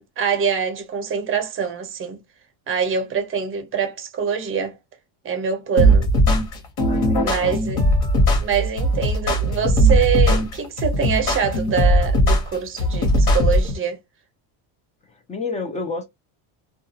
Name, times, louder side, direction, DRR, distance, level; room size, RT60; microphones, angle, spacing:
voice 1, 0.0-2.2 2.7-4.7 5.2-6.1 7.1-7.8 8.4-14.0, right 7 dB, 25° right, 0.7 m, -24 dB
sound 1, 5.8-13.7, equal, 50° left, 1.0 m, -18 dB
voice 2, 6.9-7.6 15.1-16.1, left 3 dB, 15° left, 0.3 m, -30 dB
2.4 x 2.3 x 2.7 m
cardioid pair, 155°, 49 cm